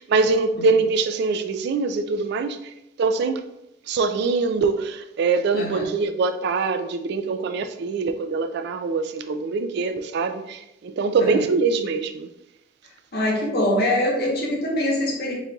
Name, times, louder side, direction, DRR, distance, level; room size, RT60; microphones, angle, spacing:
voice 1, 0.0-2.7 3.0-3.4 3.9-12.3, right 4 dB, 60° right, 0.3 m, -23 dB
voice 2, 5.5-5.9 11.2-11.4 13.1-15.3, left 1 dB, 55° left, 1.0 m, -23 dB
4.1 x 3.8 x 2.3 m
head